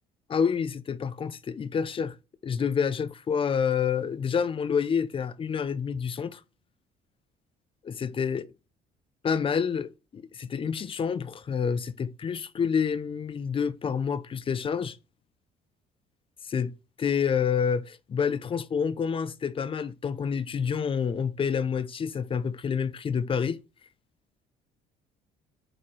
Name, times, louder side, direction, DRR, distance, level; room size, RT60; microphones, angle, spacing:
voice 1, 0.3-2.2 2.4-6.4 7.8-8.5 9.2-15.0 16.4-23.6, left 6 dB, 30° left, 0.5 m, -28 dB
8.9 x 4.2 x 3.1 m
cardioid pair, 110°, 17 cm